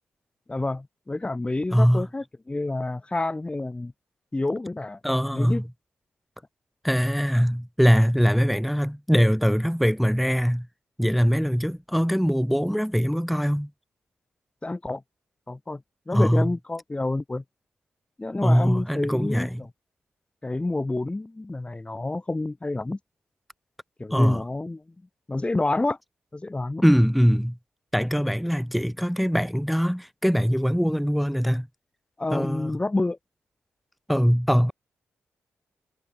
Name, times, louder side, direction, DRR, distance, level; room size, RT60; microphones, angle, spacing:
voice 1, 0.5-3.9 4.3-5.0 5.3-5.6 14.6-15.0 15.5-15.8 16.1-17.4 18.2-19.7 20.4-23.0 24.0-24.8 25.3-26.0 26.3-26.8 32.2-33.2, left 2 dB, 20° left, 1.1 m, -28 dB
voice 2, 1.7-2.0 5.0-5.6 6.8-10.7 11.0-13.7 16.1-16.5 18.4-19.6 24.1-24.4 26.8-27.6 27.9-31.7 32.3-32.8 34.1-34.7, equal, ahead, 0.7 m, -22 dB
supercardioid pair, 50°, 5 cm